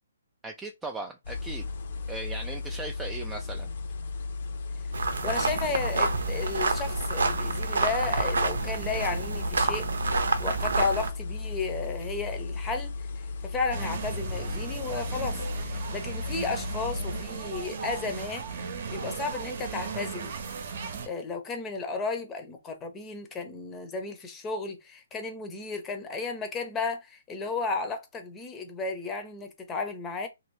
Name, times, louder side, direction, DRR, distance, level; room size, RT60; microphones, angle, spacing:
voice 1, 0.4-1.7 2.1-3.7, right 2 dB, 10° right, 0.3 m, -38 dB
sound 1, 1.2-17.2, left 3 dB, 60° left, 0.7 m, -35 dB
sound 2, 4.9-11.1, right 4 dB, 80° right, 0.7 m, -28 dB
voice 2, 5.2-9.9 10.4-12.9 13.4-18.5 18.9-20.3 21.1-30.3, left 4 dB, 15° left, 0.7 m, -33 dB
sound 3, 13.7-21.1, right 5 dB, 50° right, 0.8 m, -36 dB
2.9 x 2.7 x 3.1 m
hypercardioid pair, 155°, 0 cm